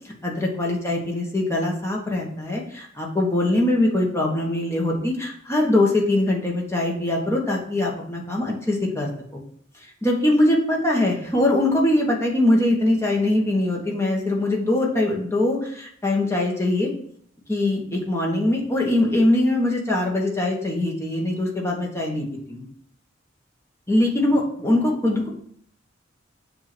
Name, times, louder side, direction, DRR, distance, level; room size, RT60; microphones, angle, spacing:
voice 1, 0.2-9.4 10.0-16.9 17.5-22.6 23.9-25.3, left 1 dB, 15° left, -1 dB, 1.2 m, -22 dB
7.6 x 2.8 x 6.0 m, 0.63 s
head